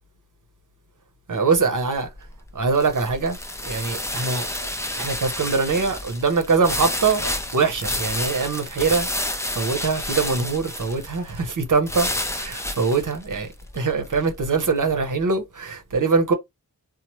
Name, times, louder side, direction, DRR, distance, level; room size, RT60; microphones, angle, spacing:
voice 1, 1.3-2.1 2.5-3.4 3.6-4.5 5.0-9.1 9.5-13.5 13.7-16.3, right 4 dB, 60° right, 0.8 m, -23 dB
sound 1, 1.9-15.0, left 1 dB, 10° left, 0.5 m, -30 dB
3.0 x 2.0 x 3.0 m
cardioid pair, 40°, 36 cm